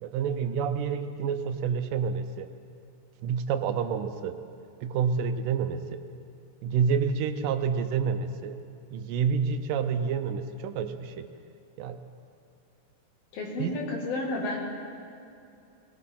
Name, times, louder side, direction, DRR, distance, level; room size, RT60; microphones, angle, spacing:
voice 1, 0.0-2.5 3.2-4.4 4.8-6.0 6.6-8.6 8.9-11.3 11.8-12.0 13.6-13.8, right 6 dB, 80° right, 9 dB, 2.3 m, -28 dB
voice 2, 13.3-14.6, left 2 dB, 90° left, -1 dB, 4.0 m, -31 dB
21.0 x 18.5 x 3.8 m, 2.6 s
omnidirectional pair, 4.1 m